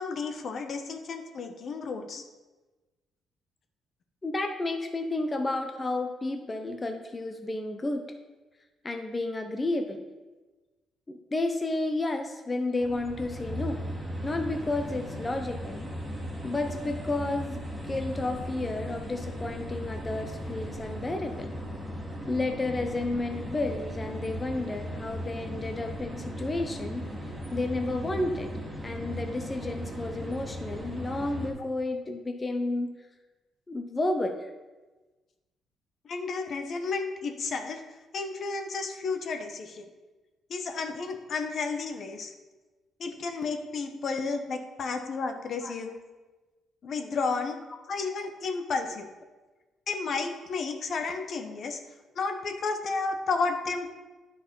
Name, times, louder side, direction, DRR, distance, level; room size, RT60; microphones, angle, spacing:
voice 1, 0.0-2.2 36.1-37.8 38.1-39.8 40.5-42.3 43.0-46.0 46.8-47.6 47.9-49.1 49.9-51.8 52.1-53.9, left 4 dB, 55° left, 6 dB, 1.0 m, -32 dB
voice 2, 4.2-8.0 8.8-10.0 11.1-13.8 14.2-15.9 16.4-21.5 22.3-27.0 27.5-28.5 28.8-32.9 33.7-34.5 45.6-45.7, left 2 dB, 25° left, 5 dB, 0.7 m, -31 dB
sound 1, 12.8-31.5, equal, 10° right, 1.9 m, -37 dB
9.7 x 4.7 x 5.4 m, 1.2 s
cardioid pair, 85°, 0 cm